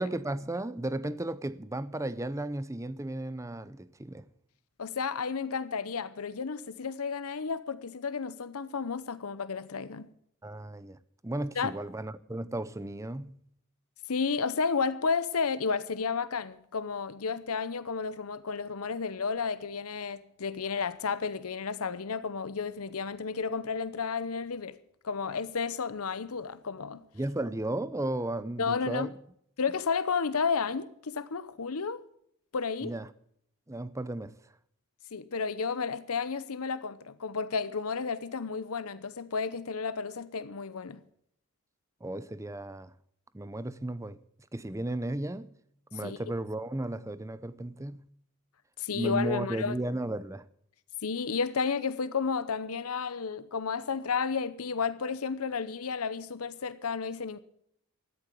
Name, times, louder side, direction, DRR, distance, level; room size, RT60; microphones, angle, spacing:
voice 1, 0.0-4.3 10.4-11.0 11.2-13.4 27.1-29.1 32.8-33.1 33.7-34.3 42.0-42.9 43.3-44.2 44.5-45.5 45.9-48.0 48.9-50.5, right 1 dB, 15° right, 0.6 m, -34 dB
voice 2, 4.8-10.1 11.6-11.7 14.1-24.8 25.0-27.0 28.6-29.1 29.6-32.0 32.5-32.9 35.1-41.0 46.0-46.2 48.8-49.8 51.0-57.4, left 5 dB, 85° left, 0.8 m, -32 dB
14.0 x 11.5 x 6.8 m
head